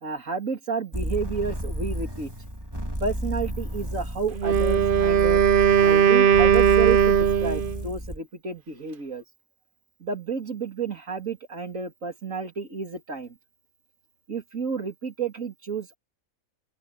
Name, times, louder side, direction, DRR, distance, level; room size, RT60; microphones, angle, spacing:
voice 1, 0.0-2.3 3.0-5.4 5.8-9.2 10.0-13.4 14.3-16.0, right 5 dB, 65° right, 3.2 m, -31 dB
sound 1, 0.9-8.2, equal, 15° right, 4.1 m, -32 dB
Wind instrument woodwind instrument, 4.3-7.8, right 8 dB, 45° right, 0.8 m, -19 dB
open air
omnidirectional pair, 1.5 m